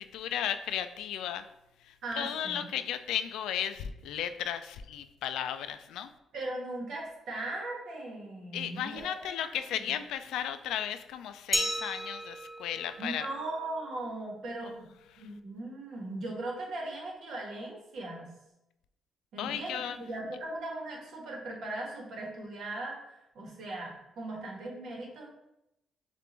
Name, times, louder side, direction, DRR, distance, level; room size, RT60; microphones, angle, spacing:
voice 1, 0.0-1.5 1.9-6.1 8.5-13.3 19.4-20.0, left 10 dB, 85° left, 10 dB, 0.3 m, -35 dB
voice 2, 2.0-2.6 6.3-9.1 9.4-9.9 13.0-14.9 15.2-18.3 19.3-25.3, right 2 dB, 70° right, -1 dB, 1.4 m, -39 dB
Glass, 11.5-14.2, equal, 5° right, 0.4 m, -36 dB
6.7 x 2.5 x 3.0 m, 0.88 s
cardioid pair, 90°, 0 cm